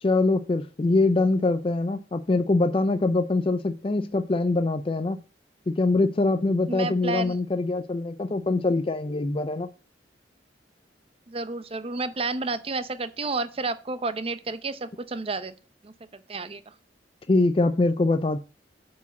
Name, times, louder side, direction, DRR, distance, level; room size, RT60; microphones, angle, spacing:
voice 1, 0.0-5.2 5.7-9.7 17.3-18.4, left 2 dB, 30° left, 0.4 m, -23 dB
voice 2, 6.7-7.4 11.3-15.5 15.8-15.9 16.3-16.6, right 3 dB, 30° right, 0.6 m, -30 dB
8.3 x 4.8 x 7.0 m
head